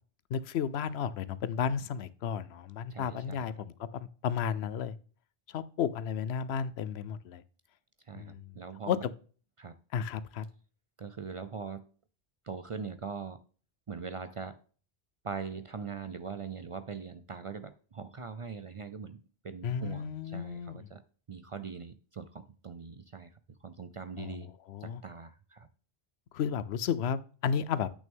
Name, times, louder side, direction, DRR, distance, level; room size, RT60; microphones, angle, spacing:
voice 1, 0.3-4.9 5.5-7.4 8.1-8.5 8.9-9.0 9.9-10.4 19.6-20.9 24.2-24.4 24.7-25.0 26.3-27.9, left 7 dB, 85° left, 0.9 m, -33 dB
voice 2, 2.9-3.6 8.0-9.1 9.6-9.7 11.0-11.9 12.4-13.4 13.9-14.6 15.2-19.2 19.4-21.0 21.3-23.3 23.6-24.5 24.8-25.7, right 5 dB, 45° right, 0.4 m, -41 dB
8.6 x 6.2 x 3.5 m
omnidirectional pair, 1.0 m